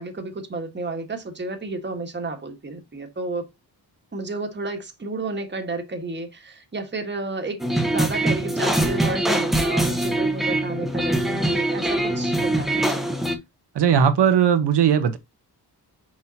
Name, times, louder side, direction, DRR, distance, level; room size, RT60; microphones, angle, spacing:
voice 1, 0.0-3.5 4.1-7.6 7.9-13.0, right 3 dB, 25° right, 1.5 m, -32 dB
sound 1, 7.6-13.4, right 1 dB, ahead, 1.1 m, -23 dB
voice 2, 13.7-15.2, right 8 dB, 75° right, 1.1 m, -18 dB
6.2 x 5.6 x 2.8 m
wide cardioid pair, 125°, 41 cm